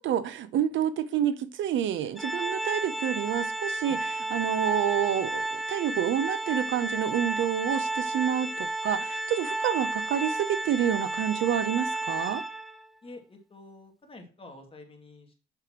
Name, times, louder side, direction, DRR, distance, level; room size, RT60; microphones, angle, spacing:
voice 1, 0.0-12.4, right 9 dB, 75° right, 0.7 m, -28 dB
Organ, 2.2-12.9, right 2 dB, ahead, 0.6 m, -32 dB
voice 2, 13.0-15.3, left 2 dB, 30° left, 2.2 m, -48 dB
6.9 x 6.8 x 2.9 m
cardioid pair, 90°, 20 cm